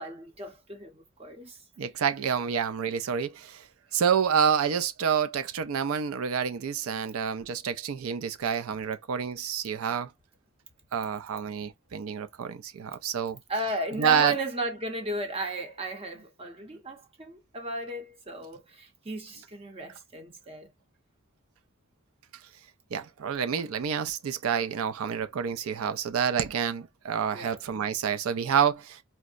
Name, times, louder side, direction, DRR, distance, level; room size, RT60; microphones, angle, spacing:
voice 1, 0.0-1.6 13.5-20.7 27.3-27.6, right 2 dB, 25° right, 0.7 m, -35 dB
voice 2, 1.8-3.7 3.9-10.1 10.9-13.4 14.0-14.4 22.9-29.0, right 7 dB, 75° right, 0.4 m, -28 dB
4.4 x 2.0 x 2.4 m
head